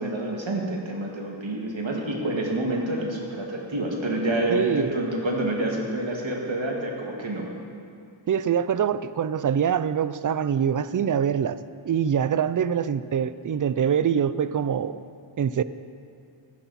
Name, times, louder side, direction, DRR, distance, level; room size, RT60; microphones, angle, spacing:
voice 1, 0.0-7.5, right 1 dB, 70° right, -1 dB, 2.0 m, -28 dB
voice 2, 4.5-5.0 8.3-11.6 11.8-15.0 15.4-15.6, right 8 dB, 45° right, 15 dB, 0.4 m, -24 dB
14.0 x 11.5 x 4.1 m, 2.4 s
wide cardioid pair, 85°, 47 cm